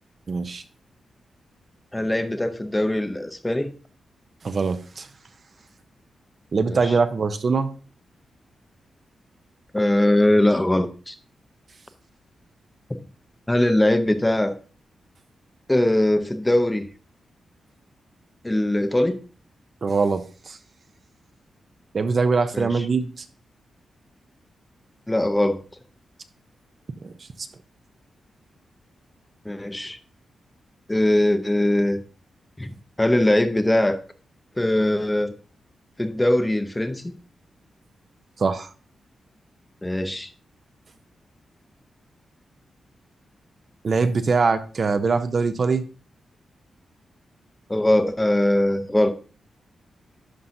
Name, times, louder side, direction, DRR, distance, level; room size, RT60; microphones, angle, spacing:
voice 1, 0.3-0.6 4.4-5.1 6.5-7.7 19.8-20.6 21.9-23.3 27.0-27.1 38.4-38.7 43.8-45.9, right 4 dB, 40° right, 10 dB, 0.5 m, -22 dB
voice 2, 1.9-3.7 6.7-6.9 9.7-11.2 13.5-14.5 15.7-16.9 18.4-19.2 22.5-22.7 25.1-25.6 29.5-30.0 30.9-32.0 32.6-34.0 34.6-35.3 36.0-37.2 39.8-40.3 47.7-49.1, left 1 dB, 10° left, 10 dB, 0.6 m, -21 dB
11.5 x 5.6 x 2.6 m, 0.37 s
wide cardioid pair, 155°, 0 cm